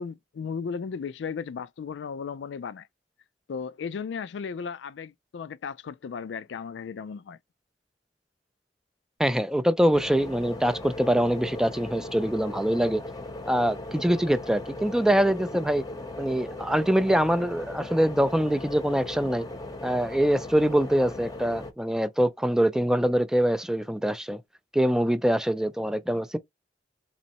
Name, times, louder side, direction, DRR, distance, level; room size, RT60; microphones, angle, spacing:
voice 1, 0.0-2.9 3.5-7.4, left 6 dB, 85° left, 0.4 m, -35 dB
voice 2, 9.2-13.0 13.5-15.8 16.2-19.5 19.8-24.4 24.7-26.4, equal, 5° right, 0.3 m, -24 dB
sound 1, 9.9-21.7, left 2 dB, 20° left, 0.8 m, -38 dB
4.0 x 3.1 x 2.8 m
head